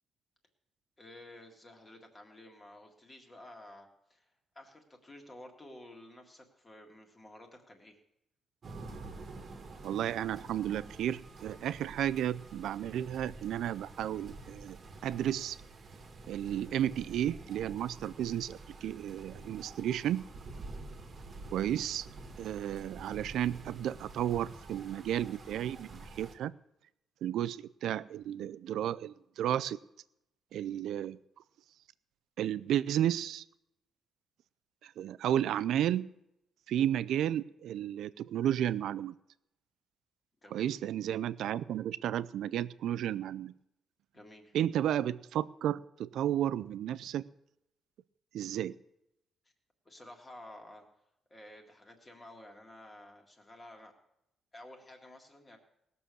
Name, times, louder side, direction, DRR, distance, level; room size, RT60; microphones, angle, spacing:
voice 1, 1.0-8.0 40.4-40.8 44.1-44.5 49.9-50.8 51.3-53.9 54.5-55.6, left 1 dB, 20° left, 3 dB, 1.9 m, -52 dB
sound 1, 8.6-26.4, right 3 dB, 35° right, 1.5 m, -48 dB
voice 2, 9.8-14.8 15.0-15.6 16.3-20.3 21.5-22.1 22.4-26.5 27.2-29.8 30.5-31.2 32.4-33.4 34.8-36.1 36.7-39.1 40.5-43.5 44.5-47.2 48.3-48.7, right 11 dB, 75° right, 17 dB, 0.4 m, -33 dB
19.0 x 6.9 x 6.2 m, 0.83 s
cardioid pair, 165°, 0 cm